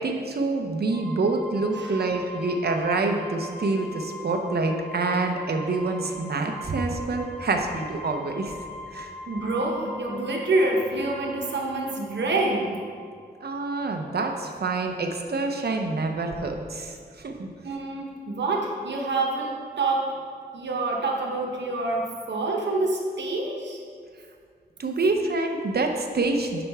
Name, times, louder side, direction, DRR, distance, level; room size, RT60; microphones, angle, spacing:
voice 1, 0.0-8.5 8.9-9.1 13.4-17.5 24.8-26.6, right 3 dB, 65° right, 4 dB, 0.8 m, -27 dB
sound 1, 0.9-13.4, left 1 dB, 20° left, 2.1 m, -42 dB
voice 2, 9.3-12.7 17.6-20.1 20.5-23.8, right 2 dB, 80° right, 0 dB, 1.2 m, -27 dB
8.6 x 6.0 x 3.6 m, 2.1 s
cardioid pair, 65°, 18 cm